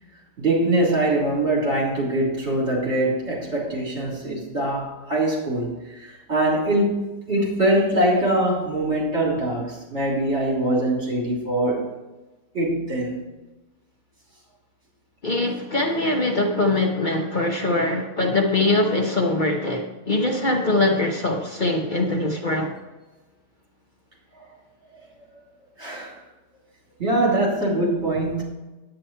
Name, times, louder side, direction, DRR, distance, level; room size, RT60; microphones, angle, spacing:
voice 1, 0.4-11.9 12.5-13.2 24.3-24.4 25.8-26.2 27.0-28.4, right 1 dB, 55° right, -4 dB, 3.8 m, -23 dB
voice 2, 15.2-22.7, left 2 dB, 40° left, 1 dB, 1.1 m, -22 dB
9.7 x 9.1 x 4.4 m, 1.1 s
omnidirectional pair, 1.4 m